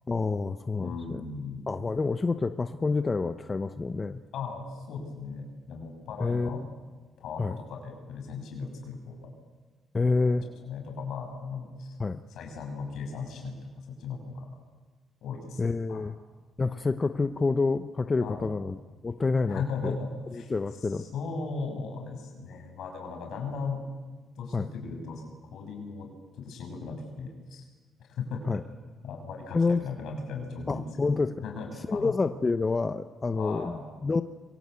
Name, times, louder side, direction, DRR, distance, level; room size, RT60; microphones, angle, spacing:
voice 1, 0.1-1.2 1.7-4.2 6.2-6.7 7.4-7.6 9.9-10.4 12.0-12.2 15.6-16.1 16.6-18.8 19.0-20.0 20.5-21.0 24.5-24.7 28.5-28.6 29.5-29.8 30.7-31.3 31.9-34.2, left 3 dB, 30° left, 10 dB, 0.9 m, -28 dB
voice 2, 0.8-1.7 4.3-6.7 7.2-9.3 10.0-12.0 12.3-14.5 15.2-15.6 15.9-16.0 18.2-18.5 19.5-20.5 20.8-23.8 24.4-25.2 25.5-26.1 26.4-27.7 28.0-28.6 29.0-31.1 31.4-32.1 33.3-33.8, left 4 dB, 75° left, 2 dB, 7.0 m, -37 dB
27.0 x 23.5 x 8.4 m, 1.3 s
cardioid pair, 90°, 0 cm